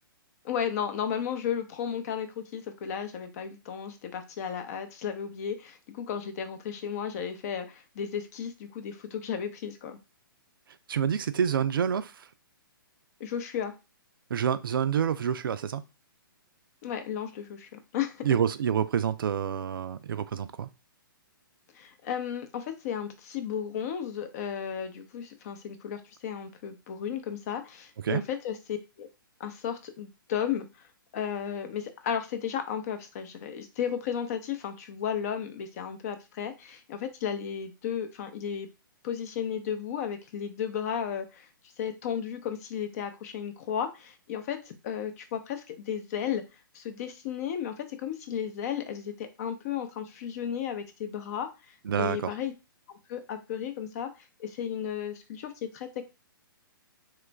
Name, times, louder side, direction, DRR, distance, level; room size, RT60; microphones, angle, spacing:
voice 1, 0.4-10.0 13.2-13.7 16.8-18.3 21.7-29.1 29.4-38.7 39.0-41.5 41.8-46.4 46.7-52.5 52.9-54.1 54.4-55.9, left 8 dB, 45° left, 0.6 m, -34 dB
voice 2, 10.9-12.1 14.3-15.8 18.2-20.7 28.1-28.2 51.9-52.3, right 8 dB, 70° right, 0.4 m, -27 dB
3.1 x 2.4 x 3.3 m
hypercardioid pair, 130°, 12 cm